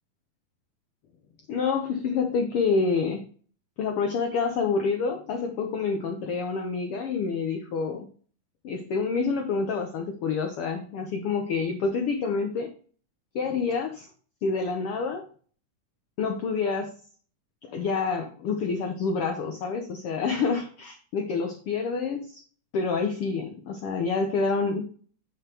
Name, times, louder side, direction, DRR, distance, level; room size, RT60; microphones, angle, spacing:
voice 1, 1.5-3.2 3.8-8.1 8.6-12.7 13.3-14.1 14.4-15.2 16.2-16.9 17.6-22.4 22.7-24.8, left 4 dB, 70° left, 4 dB, 1.4 m, -27 dB
10.0 x 5.7 x 2.9 m, 0.44 s
omnidirectional pair, 3.7 m